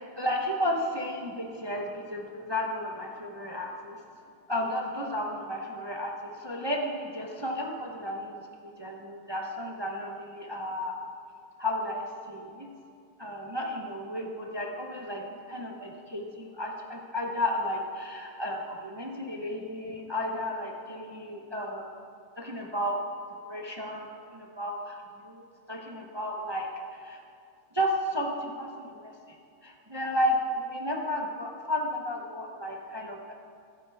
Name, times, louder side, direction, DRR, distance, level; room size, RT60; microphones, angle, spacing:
voice 1, 0.0-4.0 4.5-8.5 8.8-11.0 11.6-12.7 13.2-21.9 22.4-23.0 23.5-27.2 27.7-29.1 29.6-33.3, left 1 dB, 45° right, 0 dB, 0.3 m, -33 dB
26.5 x 9.0 x 3.5 m, 2.4 s
omnidirectional pair, 2.3 m